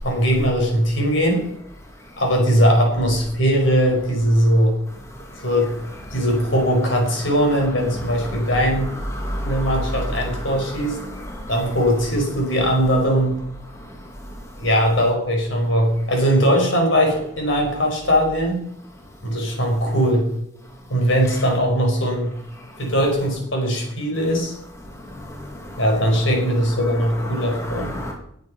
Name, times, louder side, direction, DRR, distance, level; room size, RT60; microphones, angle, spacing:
voice 1, 0.0-1.4 2.2-4.8 5.4-5.7 6.1-8.9 9.4-11.0 11.5-13.4 14.6-18.6 19.2-20.3 20.9-22.3 22.8-24.6 25.8-27.9, equal, 65° left, 1 dB, 5.2 m, -20 dB
voice 2, 9.2-9.8 11.3-11.5 25.2-25.8 27.3-28.1, equal, 15° left, 1 dB, 1.7 m, -30 dB
20.0 x 7.9 x 5.7 m, 0.74 s
head